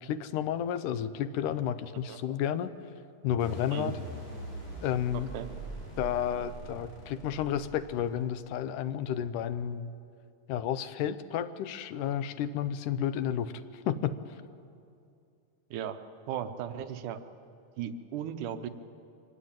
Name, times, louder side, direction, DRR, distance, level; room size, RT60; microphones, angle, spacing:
voice 1, 0.0-2.7 3.2-4.0 4.8-5.3 6.0-9.9 10.5-14.2, left 9 dB, 85° left, 13 dB, 2.3 m, -31 dB
sound 1, 3.4-8.4, right 2 dB, 20° left, 6.2 m, -42 dB
voice 2, 16.3-17.2 17.8-18.7, right 9 dB, 85° right, 8 dB, 2.5 m, -36 dB
24.0 x 17.5 x 9.0 m, 2.5 s
omnidirectional pair, 3.5 m